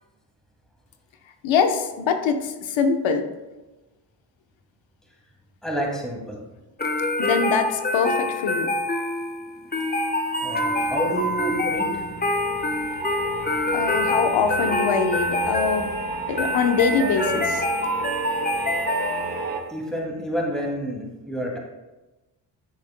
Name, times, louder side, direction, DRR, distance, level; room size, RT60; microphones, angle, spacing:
voice 1, 1.4-3.2 7.2-8.7 13.7-15.9 16.3-17.7, left 5 dB, 75° left, 7 dB, 1.0 m, -23 dB
voice 2, 5.6-6.4 9.6-9.7 10.4-12.0 19.7-21.6, right 1 dB, ahead, -2 dB, 2.3 m, -29 dB
sound 1, 6.8-19.6, left 2 dB, 20° left, 1.1 m, -26 dB
sound 2, 10.7-19.6, right 3 dB, 45° right, 1.4 m, -33 dB
12.5 x 6.4 x 2.2 m, 1.1 s
supercardioid pair, 60°, 46 cm